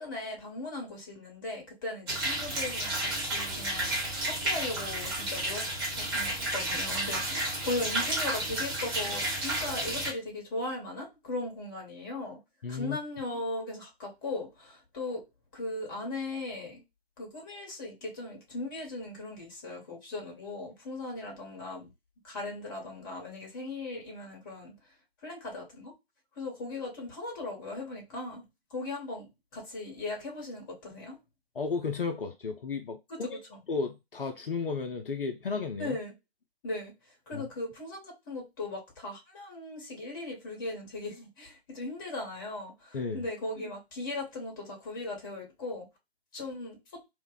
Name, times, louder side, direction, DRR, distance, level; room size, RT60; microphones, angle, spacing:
voice 1, 0.0-4.0 4.3-5.7 5.9-12.4 12.7-15.2 15.5-16.8 17.2-21.9 22.2-24.7 25.2-25.9 26.4-28.4 28.7-31.2 33.1-33.4 35.8-36.1 36.6-36.9 37.3-45.8 46.3-47.0, left 2 dB, 20° left, 1.0 m, -38 dB
sound 1, 2.1-10.1, right 1 dB, 25° right, 1.1 m, -31 dB
voice 2, 12.6-13.0 31.6-33.4 33.7-36.0 37.3-37.5 42.9-43.2, left 4 dB, 60° left, 0.6 m, -33 dB
2.7 x 2.2 x 3.7 m
figure-of-eight pair, 140°, 32 cm